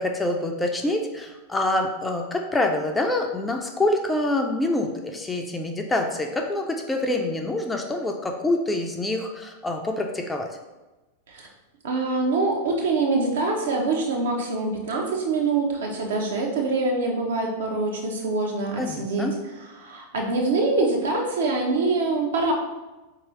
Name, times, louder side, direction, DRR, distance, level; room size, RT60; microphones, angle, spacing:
voice 1, 0.0-10.5 18.8-19.3, left 1 dB, 10° left, 3 dB, 0.4 m, -26 dB
voice 2, 11.8-19.3 19.8-22.5, right 3 dB, 60° right, 1 dB, 0.8 m, -24 dB
4.5 x 2.8 x 3.1 m, 1.1 s
figure-of-eight pair, 90°, 0 cm